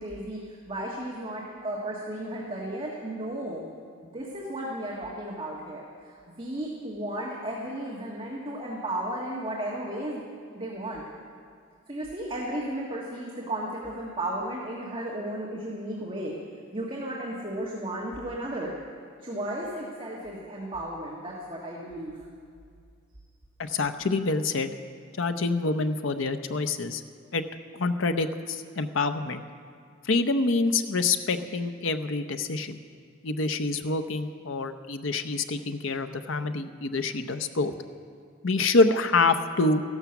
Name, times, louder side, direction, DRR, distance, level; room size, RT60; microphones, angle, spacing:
voice 1, 0.0-3.7 4.1-10.2 10.5-11.0 11.9-16.4 16.7-18.7 19.2-22.2 23.6-23.7, right 1 dB, 25° right, -4 dB, 1.5 m, -34 dB
voice 2, 23.6-24.7 25.2-27.0 27.3-27.4 27.7-29.4 30.0-32.8 33.2-37.7 38.4-39.8, left 3 dB, 65° left, 10 dB, 0.7 m, -26 dB
14.5 x 12.0 x 7.0 m, 2.2 s
head